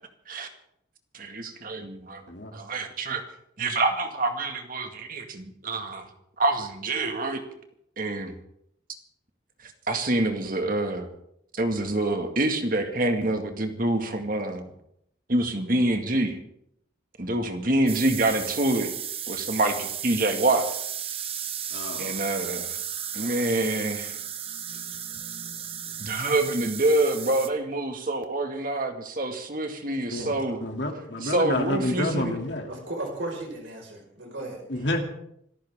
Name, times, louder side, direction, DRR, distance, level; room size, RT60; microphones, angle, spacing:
voice 1, 1.1-2.2 2.5-3.2 3.6-6.1 6.4-7.4 8.0-8.3 9.9-11.1 11.5-14.6 15.3-16.4 17.2-18.9 19.3-20.7 22.0-22.7 23.1-24.2 26.0-30.6 31.2-32.4, right 2 dB, 45° right, 5 dB, 1.9 m, -26 dB
sound 1, 17.9-27.5, right 9 dB, 30° right, 0.8 m, -34 dB
voice 2, 21.7-22.1 30.1-32.7 34.7-35.0, left 1 dB, 60° left, 2 dB, 2.8 m, -29 dB
voice 3, 30.2-30.6 32.7-34.6, right 1 dB, 70° right, 0 dB, 5.2 m, -36 dB
26.0 x 14.0 x 3.7 m, 0.74 s
head